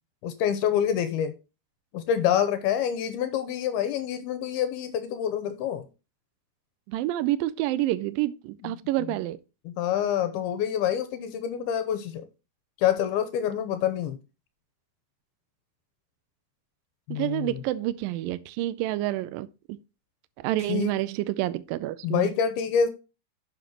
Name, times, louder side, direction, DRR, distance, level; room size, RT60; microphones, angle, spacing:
voice 1, 0.2-1.3 1.9-5.9 8.6-8.8 9.7-12.3 12.8-14.2 17.1-17.6 20.7-20.9 22.0-22.9, left 9 dB, 85° left, 2.7 m, -27 dB
voice 2, 6.9-9.4 17.1-19.5 20.4-22.3, right 15 dB, 80° right, 2.1 m, -28 dB
11.0 x 7.2 x 2.9 m
omnidirectional pair, 4.6 m